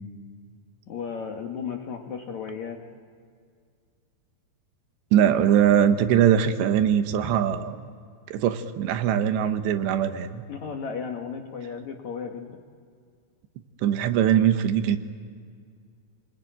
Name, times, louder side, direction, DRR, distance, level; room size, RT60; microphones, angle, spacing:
voice 1, 0.9-2.8 5.8-6.0 10.5-12.6, left 6 dB, 60° left, 2 dB, 2.1 m, -34 dB
voice 2, 5.1-7.9 8.3-10.4 13.8-15.0, right 9 dB, 80° right, 9 dB, 3.3 m, -21 dB
30.0 x 21.0 x 9.1 m, 2.2 s
omnidirectional pair, 5.0 m